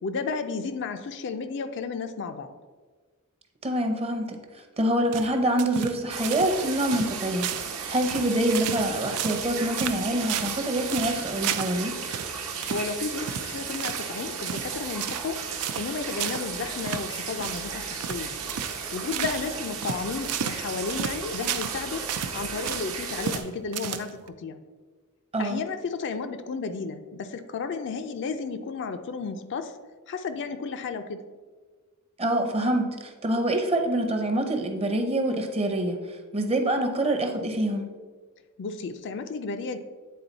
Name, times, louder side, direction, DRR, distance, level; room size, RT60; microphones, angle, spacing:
voice 1, 0.0-2.5 12.7-15.4 15.7-18.3 18.9-22.1 22.3-24.6 25.4-29.7 30.1-31.2 38.6-39.8, left 4 dB, 55° left, 9 dB, 0.4 m, -33 dB
voice 2, 3.6-12.0 25.3-25.6 32.2-37.9, right 1 dB, 25° right, 4 dB, 0.7 m, -26 dB
sound 1, 5.1-6.0 6.2-6.5 6.8-7.1 7.4-7.7 8.0-8.9 9.2-9.5 9.8-10.6 10.9-11.8 12.1-12.3 12.6-12.9 13.3-14.1 14.4-14.7 15.0-15.3 15.6-15.9 16.2-16.5 16.8-17.1 17.4-17.7 18.0-18.2 18.5-18.8 19.1-19.5 19.8-21.8 22.1-22.9 23.2-23.5 23.7-24.3, right 9 dB, 85° right, 0.4 m, -32 dB
sound 2, 6.1-23.4, right 6 dB, 70° right, 1.0 m, -35 dB
8.5 x 3.8 x 4.0 m, 1.4 s
head